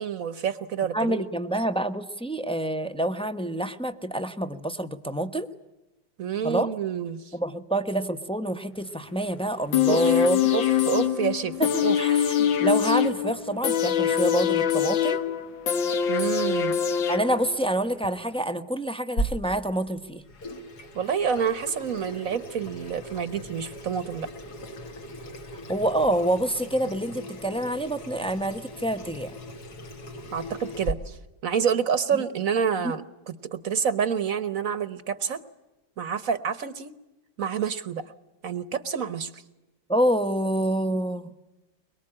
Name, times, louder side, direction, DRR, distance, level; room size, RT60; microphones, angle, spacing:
voice 1, 0.0-1.2 6.2-7.3 9.9-10.2 10.5-11.6 11.8-12.0 16.1-16.7 20.9-24.3 30.3-31.2 31.4-35.4 36.0-36.9 37.4-38.0 38.4-39.4, right 7 dB, 50° right, 13 dB, 1.3 m, -28 dB
voice 2, 0.9-5.5 6.4-6.7 7.3-10.5 11.6-15.2 17.1-20.2 25.7-29.3 39.9-41.3, right 1 dB, 5° left, 7 dB, 0.6 m, -27 dB
sound 1, 9.7-17.7 18.0-18.1, left 9 dB, 80° left, 2.1 m, -24 dB
Water tap faucet / Sink (filling or washing), 19.2-30.9, equal, 55° left, 2.5 m, -38 dB
23.5 x 23.0 x 8.8 m, 1.0 s
omnidirectional pair, 2.1 m